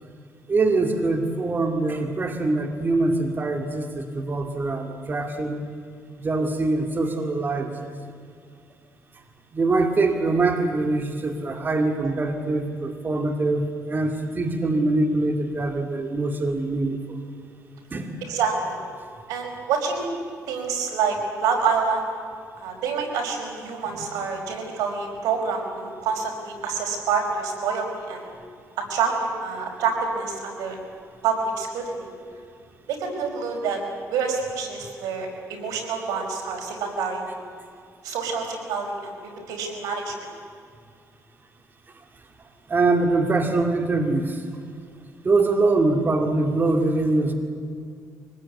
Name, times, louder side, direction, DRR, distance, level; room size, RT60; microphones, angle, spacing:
voice 1, 0.5-5.6 6.2-7.9 9.5-17.2 17.9-18.2 23.9-24.1 36.1-36.3 42.7-44.4 45.2-47.3, right 2 dB, 35° right, 5 dB, 2.4 m, -23 dB
voice 2, 18.2-18.8 19.3-20.1 20.5-22.1 22.6-28.3 28.8-30.8 31.2-32.1 32.9-33.8 34.1-37.4 38.0-39.2 39.5-40.3, right 5 dB, 90° right, 2 dB, 5.2 m, -27 dB
24.0 x 19.5 x 9.6 m, 2.3 s
cardioid pair, 95°, 6 cm